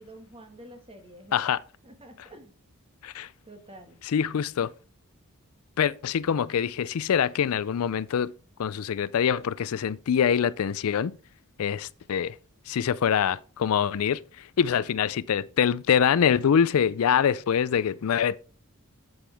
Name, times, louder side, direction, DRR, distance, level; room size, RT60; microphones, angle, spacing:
voice 1, 0.0-1.5 1.8-2.5 3.4-4.0, right 1 dB, 25° right, 1.6 m, -48 dB
voice 2, 4.1-4.7 5.8-8.3 8.6-11.1 11.6-12.3 12.7-14.2 14.6-18.4, left 8 dB, 70° left, 0.4 m, -24 dB
8.3 x 8.0 x 3.4 m
head